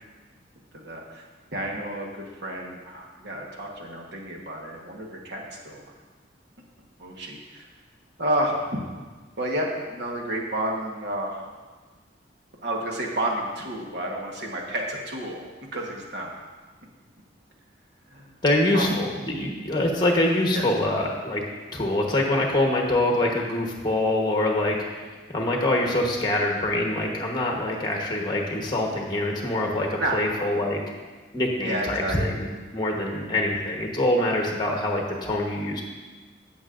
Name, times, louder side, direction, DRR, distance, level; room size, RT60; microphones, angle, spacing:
voice 1, 0.7-1.3 1.5-5.8 7.0-7.6 8.2-8.8 9.4-11.4 12.6-15.4 15.7-16.3 18.1-18.3 18.7-19.0 20.5-20.7 28.1-28.2 30.0-30.8 31.6-32.4, right 1 dB, 60° right, -1 dB, 1.3 m, -30 dB
voice 2, 18.4-21.4 21.7-24.8 25.3-30.8 31.3-35.8, left 1 dB, 20° left, 0 dB, 1.1 m, -24 dB
15.5 x 6.2 x 2.5 m, 1.4 s
head